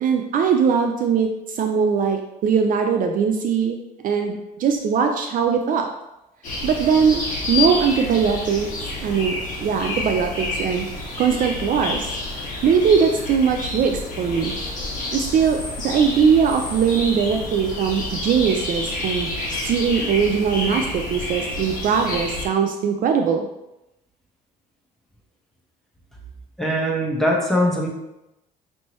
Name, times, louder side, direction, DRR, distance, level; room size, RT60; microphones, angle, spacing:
voice 1, 0.0-3.8 4.0-5.9 6.6-8.7 9.0-9.4 9.6-10.9 11.2-12.1 12.4-14.5 15.1-19.3 19.6-23.5, right 6 dB, 55° right, 4 dB, 0.4 m, -20 dB
sound 1, 6.4-22.5, left 2 dB, 50° left, 1.4 m, -29 dB
voice 2, 26.6-27.9, equal, ahead, -2 dB, 1.1 m, -21 dB
5.2 x 3.2 x 3.0 m, 0.92 s
cardioid pair, 110°, 17 cm